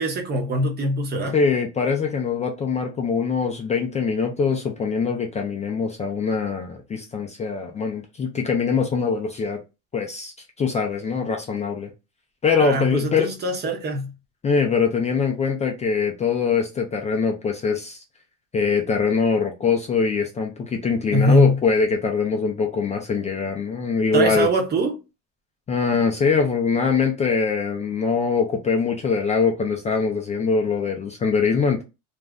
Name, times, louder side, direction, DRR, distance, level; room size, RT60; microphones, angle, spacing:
voice 1, 0.0-1.3 12.6-14.1 21.1-21.6 24.1-24.9, right 1 dB, 25° right, 0.8 m, -22 dB
voice 2, 1.3-9.6 9.9-10.3 10.6-11.9 12.4-13.3 14.4-18.0 18.5-24.5 25.7-31.8, left 5 dB, 20° left, 0.4 m, -23 dB
2.5 x 2.1 x 3.4 m
cardioid pair, 130°, 36 cm